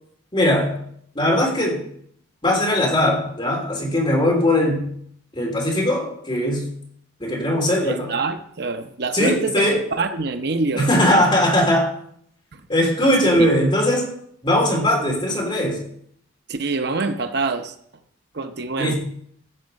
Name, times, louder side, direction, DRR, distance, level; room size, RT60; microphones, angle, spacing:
voice 1, 0.3-0.8 1.1-1.8 2.4-4.9 5.3-6.7 7.2-8.1 9.1-9.8 10.8-11.9 12.7-14.1 14.4-15.8 18.8-19.0, left 1 dB, 25° left, -1 dB, 3.2 m, -19 dB
voice 2, 7.8-9.6 9.9-11.2 12.5-12.6 13.0-13.1 13.4-13.5 16.5-17.7 18.3-18.9, right 3 dB, 50° right, 8 dB, 0.8 m, -26 dB
15.5 x 6.5 x 5.3 m, 0.66 s
head